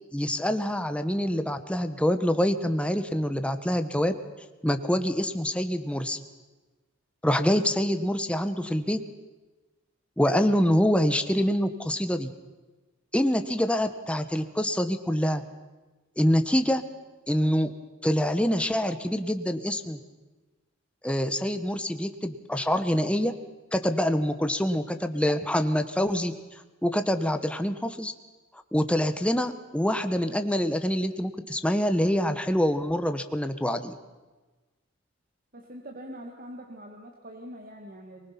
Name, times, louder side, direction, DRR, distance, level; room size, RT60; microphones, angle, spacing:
voice 1, 0.1-4.1 4.6-6.2 7.2-9.0 10.2-12.3 13.1-15.4 16.2-16.8 17.3-17.7 18.0-20.0 21.0-23.3 23.7-26.3 26.8-28.1 28.7-33.9, equal, 5° left, 8 dB, 1.1 m, -25 dB
voice 2, 35.5-38.3, equal, 45° right, 1 dB, 2.0 m, -43 dB
23.5 x 20.5 x 5.9 m, 1.2 s
head